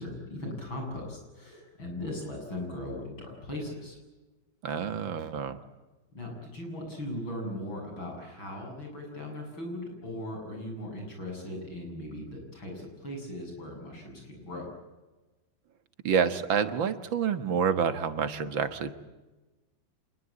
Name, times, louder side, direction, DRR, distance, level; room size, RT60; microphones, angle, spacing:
voice 1, 0.0-4.0 6.1-14.7, left 1 dB, 85° left, 2 dB, 8.7 m, -38 dB
voice 2, 4.6-5.6 16.0-18.9, right 7 dB, 80° right, 10 dB, 2.2 m, -28 dB
26.5 x 21.5 x 8.8 m, 1.1 s
omnidirectional pair, 2.1 m